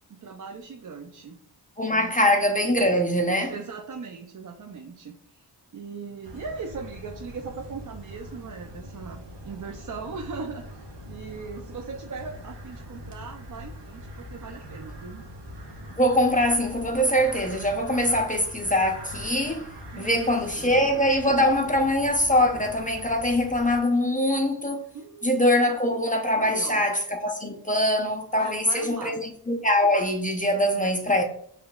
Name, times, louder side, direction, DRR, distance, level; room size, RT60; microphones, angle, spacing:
voice 1, 0.1-1.4 1.9-2.1 3.5-5.5 5.7-15.2 19.9-20.7 24.9-25.5 26.3-26.8 28.3-29.2 30.6-30.8, right 5 dB, 45° right, 0.6 m, -39 dB
voice 2, 1.8-3.5 16.0-19.7 20.0-24.9 25.2-31.2, left 1 dB, 20° left, 0.7 m, -23 dB
sound 1, 6.2-23.8, equal, 75° right, 1.2 m, -42 dB
5.8 x 3.2 x 2.4 m
cardioid pair, 60°, 43 cm